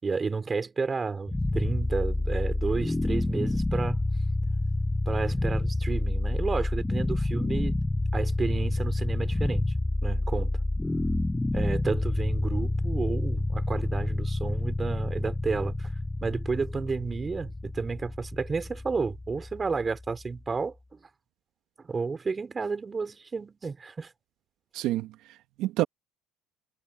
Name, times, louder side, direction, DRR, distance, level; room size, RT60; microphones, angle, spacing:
voice 1, 0.0-4.0 5.1-7.8 8.1-9.7 10.0-10.6 11.5-15.9 16.2-21.0 21.8-24.1, right 4 dB, 25° right, 4.8 m, -31 dB
sound 1, 1.3-20.3, left 2 dB, 10° left, 5.3 m, -29 dB
voice 2, 24.7-25.8, right 15 dB, 70° right, 1.6 m, -29 dB
supercardioid pair, 80°, 0 cm